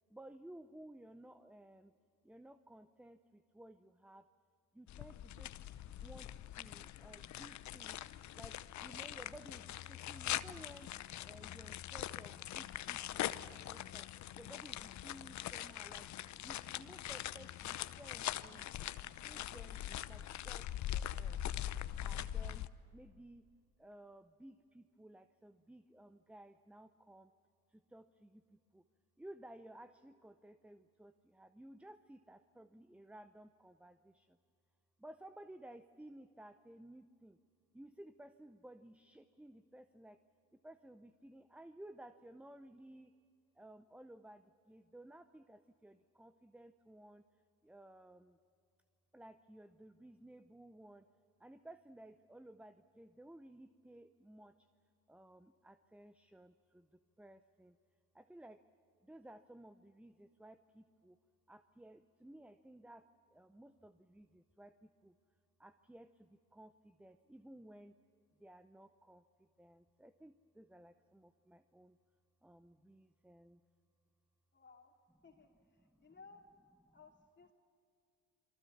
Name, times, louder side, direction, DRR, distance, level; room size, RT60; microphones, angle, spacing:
voice 1, 0.1-2.0 2.2-4.3 4.7-5.6 6.0-8.0 8.3-11.0 11.2-14.1 14.4-16.1 16.4-18.9 19.2-21.4 22.0-23.5 23.8-27.3 27.7-28.8 29.2-34.4 35.0-37.4 37.7-40.2 40.6-43.1 43.6-47.2 47.6-48.4 49.1-51.1 51.4-54.7 55.1-57.8 58.1-58.6 59.0-61.2 61.5-65.2 65.6-68.0 68.4-72.0 72.4-73.6 75.9-76.0, right 1 dB, 5° right, 12 dB, 0.6 m, -57 dB
sound 1, 4.9-22.7, left 12 dB, 40° left, 0.8 m, -43 dB
voice 2, 74.5-75.0 75.2-76.4 76.9-77.5, left 4 dB, 25° left, 2 dB, 2.8 m, -60 dB
28.0 x 23.0 x 7.1 m, 2.3 s
hypercardioid pair, 65°, 43 cm